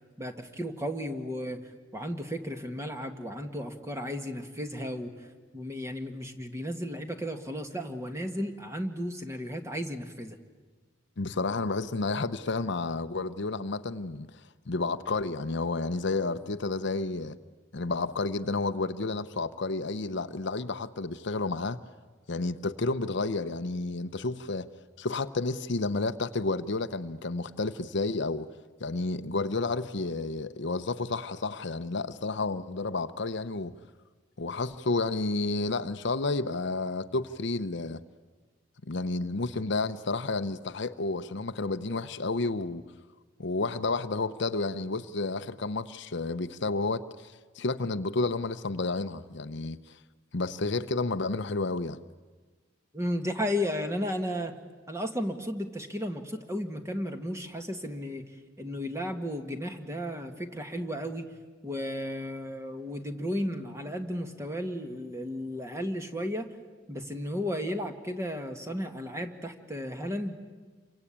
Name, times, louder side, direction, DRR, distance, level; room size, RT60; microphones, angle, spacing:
voice 1, 0.2-1.6 1.9-5.1 5.5-10.4 52.9-54.5 54.9-58.3 58.6-61.3 61.6-66.5 66.9-70.4, equal, 15° right, 1.9 m, -34 dB
voice 2, 11.2-14.4 14.7-17.4 17.7-21.8 22.3-24.7 25.0-28.5 28.8-33.7 34.4-38.0 38.9-42.8 43.4-50.0 50.3-52.0, left 3 dB, 65° left, 0.8 m, -31 dB
28.5 x 24.0 x 8.7 m
head